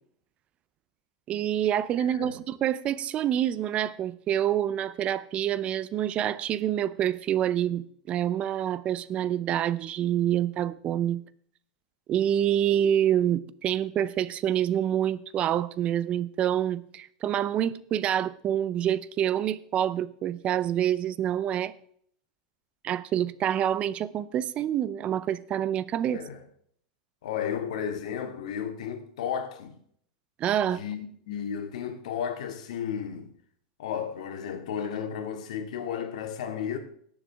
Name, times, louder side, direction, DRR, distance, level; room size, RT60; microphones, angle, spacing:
voice 1, 1.3-11.2 12.1-21.7 22.8-26.2 30.4-30.8, right 10 dB, 30° right, 0.6 m, -27 dB
voice 2, 26.1-26.4 27.2-29.7 30.7-33.3 33.8-36.8, left 8 dB, 80° left, 2.1 m, -33 dB
17.5 x 7.2 x 3.5 m
supercardioid pair, 135°, 4 cm